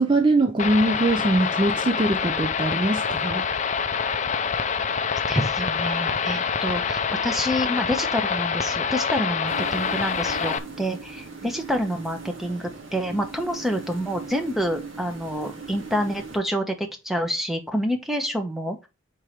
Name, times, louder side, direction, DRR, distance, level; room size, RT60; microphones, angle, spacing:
voice 1, 0.0-3.4, right 2 dB, 25° right, 0.5 m, -22 dB
sound 1, 0.6-10.6, left 6 dB, 35° left, 0.5 m, -26 dB
voice 2, 5.3-18.8, equal, ahead, 0.9 m, -28 dB
sound 2, 9.5-16.4, right 4 dB, 80° right, 2.1 m, -40 dB
4.6 x 4.5 x 5.1 m
head